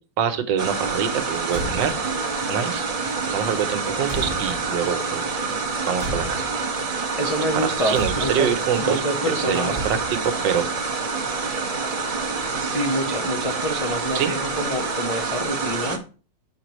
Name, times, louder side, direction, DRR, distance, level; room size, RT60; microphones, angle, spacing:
voice 1, 0.2-2.0 2.5-2.9 3.2-5.2 5.9-6.4 7.5-9.0 9.3-10.7 14.1-14.3, right 8 dB, 80° right, 9 dB, 1.5 m, -25 dB
Forest waterfall, 0.6-16.0, right 4 dB, 35° right, 0.6 m, -27 dB
Car / Truck / Slam, 1.4-2.2 3.4-4.9 6.0-6.7 7.9-8.6 9.7-10.4, right 2 dB, 15° right, 1.2 m, -34 dB
voice 2, 7.2-8.5 8.8-9.9 12.5-16.0, equal, 55° left, 0 dB, 0.3 m, -27 dB
6.5 x 5.2 x 3.0 m, 0.35 s
omnidirectional pair, 2.0 m